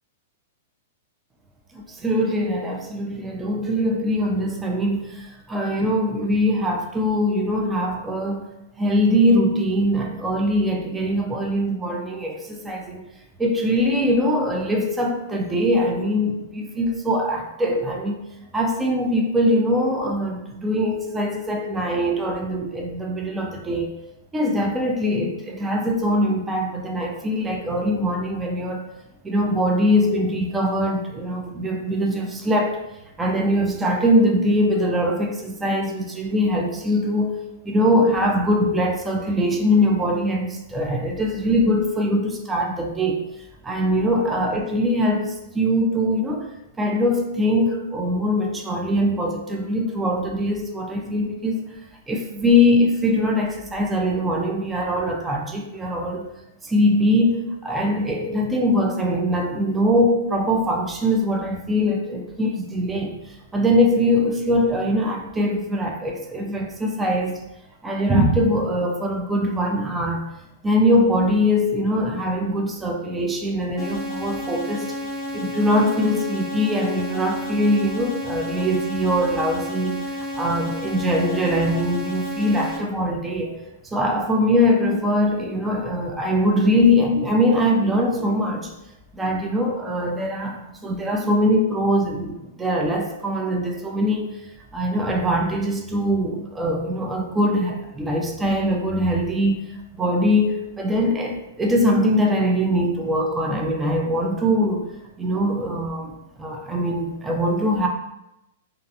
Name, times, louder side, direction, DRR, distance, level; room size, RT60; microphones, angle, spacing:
voice 1, 1.7-8.5 8.8-13.1 13.4-18.3 18.5-23.9 24.3-28.8 29.2-32.8 33.2-43.2 43.6-46.5 46.8-51.6 52.1-56.3 56.6-67.4 67.8-70.2 70.6-75.0 75.3-83.6 83.8-88.7 89.1-94.4 94.7-104.9 105.2-107.9, equal, 10° right, 0 dB, 0.3 m, -22 dB
sound 1, 73.8-82.8, left 1 dB, 5° left, 0.9 m, -31 dB
2.4 x 2.3 x 2.6 m, 0.89 s
hypercardioid pair, 140°, 0 cm